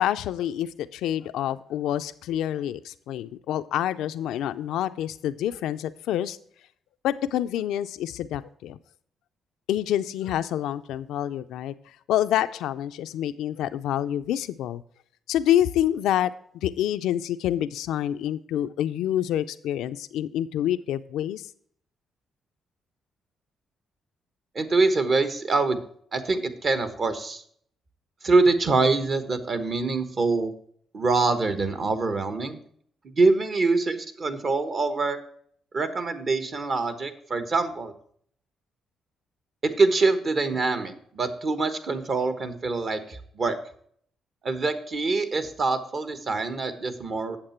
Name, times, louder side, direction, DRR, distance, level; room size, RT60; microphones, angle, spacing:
voice 1, 0.0-6.4 7.0-8.8 9.7-11.7 12.1-14.8 15.3-16.3 16.6-21.4, left 11 dB, 85° left, 11 dB, 0.4 m, -27 dB
voice 2, 24.5-25.8 26.1-27.4 28.2-30.5 30.9-32.6 33.0-35.2 35.7-37.9 39.6-43.6 44.4-47.4, right 3 dB, 45° right, 10 dB, 1.2 m, -24 dB
8.8 x 7.2 x 4.4 m, 0.62 s
cardioid pair, 90°, 0 cm